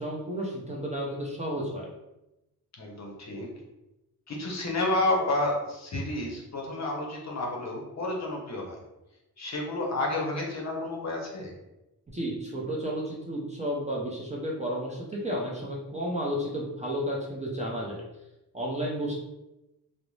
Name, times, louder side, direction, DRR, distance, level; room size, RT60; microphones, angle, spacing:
voice 1, 0.0-1.9 12.1-18.0 18.5-19.1, equal, 20° right, -4 dB, 0.5 m, -32 dB
voice 2, 2.8-3.5 4.3-8.8 9.4-11.5, left 2 dB, 45° left, 0 dB, 0.7 m, -30 dB
2.4 x 2.0 x 3.1 m, 0.95 s
cardioid pair, 100°, 37 cm